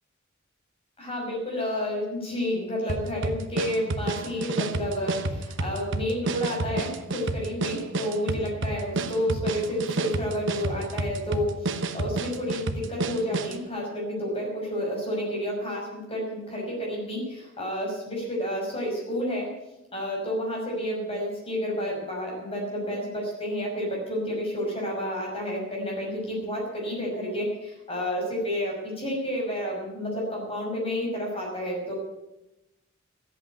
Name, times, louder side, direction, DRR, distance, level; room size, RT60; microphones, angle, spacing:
voice 1, 1.0-19.5 19.9-31.9, equal, 30° left, -1 dB, 5.9 m, -30 dB
sound 1, 2.9-13.6, right 2 dB, 65° right, 1.0 m, -30 dB
14.0 x 8.3 x 9.8 m, 0.94 s
head